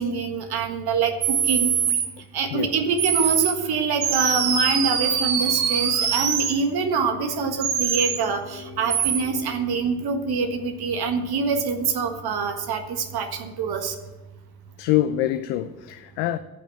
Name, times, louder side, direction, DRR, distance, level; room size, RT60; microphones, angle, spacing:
voice 1, 0.0-1.7 2.3-13.9, right 5 dB, 55° right, 1.6 m, -25 dB
sound 1, 1.2-2.1 3.0-3.5 4.0-6.5 7.6-8.2 8.9-9.2, right 7 dB, 85° right, 1.0 m, -23 dB
sound 2, 6.7-10.0, left 6 dB, 40° left, 2.9 m, -43 dB
voice 2, 14.8-16.4, left 13 dB, 65° left, 0.6 m, -25 dB
14.5 x 6.1 x 8.1 m
figure-of-eight pair, 40°, 45 cm